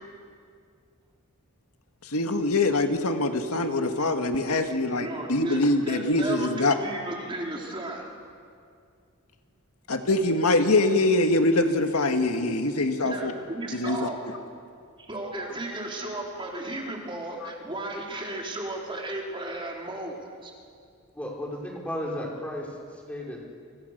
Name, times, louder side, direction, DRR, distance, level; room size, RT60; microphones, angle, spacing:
voice 1, 2.0-6.7 9.9-13.3 13.7-14.1 17.4-17.5, left 2 dB, 85° left, 5 dB, 1.9 m, -24 dB
voice 2, 5.0-8.1 13.0-14.3 15.0-20.5, right 1 dB, 20° right, -1 dB, 4.1 m, -34 dB
voice 3, 21.1-23.4, left 1 dB, 5° left, -3 dB, 5.3 m, -34 dB
29.5 x 26.0 x 6.8 m, 2.2 s
head